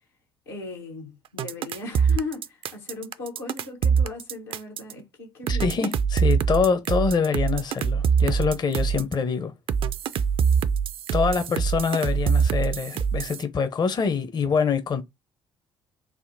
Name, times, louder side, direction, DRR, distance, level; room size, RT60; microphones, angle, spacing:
voice 1, 0.5-5.9, left 3 dB, 80° left, 1.0 m, -37 dB
sound 1, 1.4-4.9 5.5-9.1 9.7-13.4, right 6 dB, 45° right, 0.4 m, -24 dB
voice 2, 5.5-9.5 11.1-15.0, left 5 dB, 35° left, 0.6 m, -25 dB
3.5 x 2.0 x 2.6 m
hypercardioid pair, 50°, 12 cm